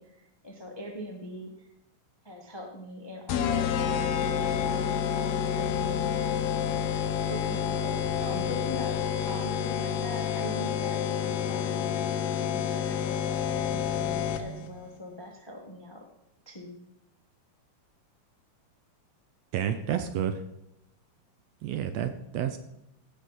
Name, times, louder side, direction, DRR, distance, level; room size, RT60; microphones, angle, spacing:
voice 1, 0.0-1.7 2.2-6.1 7.3-12.0 12.4-16.0 16.4-16.9, equal, 30° left, 1 dB, 0.4 m, -42 dB
sound 1, 3.3-14.7, left 8 dB, 75° left, 1.9 m, -29 dB
voice 2, 19.5-20.4 21.6-22.6, right 9 dB, 75° right, 9 dB, 1.6 m, -30 dB
16.0 x 6.6 x 4.0 m, 0.84 s
omnidirectional pair, 3.4 m